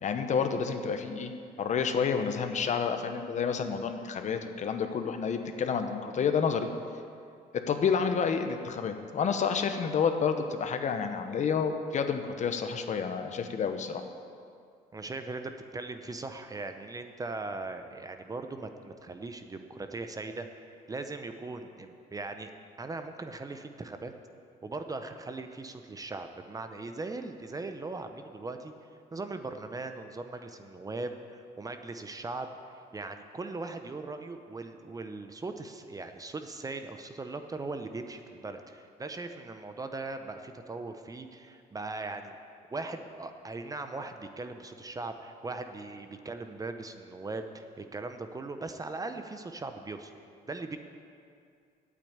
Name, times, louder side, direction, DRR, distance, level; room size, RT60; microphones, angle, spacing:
voice 1, 0.0-1.3 1.6-6.7 7.5-14.0, left 6 dB, 45° left, 7 dB, 1.0 m, -29 dB
voice 2, 14.9-22.5 22.8-24.1 24.6-28.7 29.1-32.5 32.9-42.3 42.7-50.1 50.5-50.8, right 3 dB, 20° right, 7 dB, 0.7 m, -39 dB
8.9 x 8.6 x 8.8 m, 2.4 s
cardioid pair, 110°, 17 cm